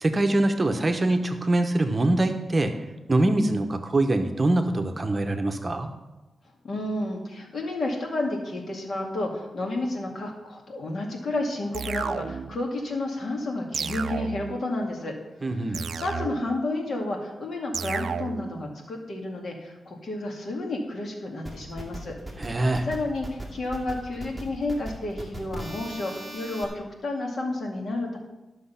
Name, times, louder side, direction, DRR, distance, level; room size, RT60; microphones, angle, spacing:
voice 1, 0.0-2.7 3.1-5.9 15.4-15.8 22.4-22.9, right 2 dB, 30° right, 6 dB, 0.9 m, -23 dB
voice 2, 6.6-15.1 15.4-22.1 22.5-28.2, left 2 dB, 65° left, 1 dB, 2.1 m, -31 dB
sound 1, 11.7-12.6 13.7-14.6 15.7-16.6 17.7-18.6, right 7 dB, 75° right, 0.3 m, -32 dB
sound 2, 21.5-26.6, right 1 dB, ahead, 2.3 m, -38 dB
12.5 x 6.4 x 5.7 m, 1.0 s
wide cardioid pair, 110°, 0 cm